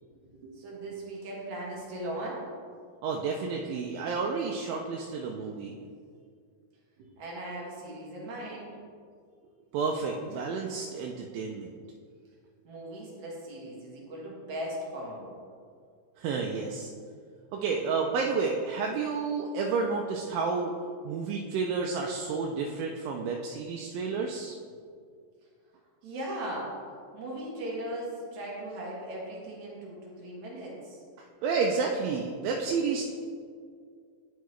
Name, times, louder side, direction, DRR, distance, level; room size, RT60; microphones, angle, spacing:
voice 1, 0.1-2.5 7.0-8.8 12.6-15.4 26.0-26.7 27.1-31.0, right 1 dB, 60° right, -4 dB, 2.7 m, -38 dB
voice 2, 3.0-5.8 9.7-11.8 16.2-16.9 17.5-20.7 21.0-24.6 31.4-33.1, right 4 dB, 85° right, 0 dB, 2.3 m, -30 dB
11.5 x 4.6 x 3.1 m, 2.1 s
omnidirectional pair, 4.0 m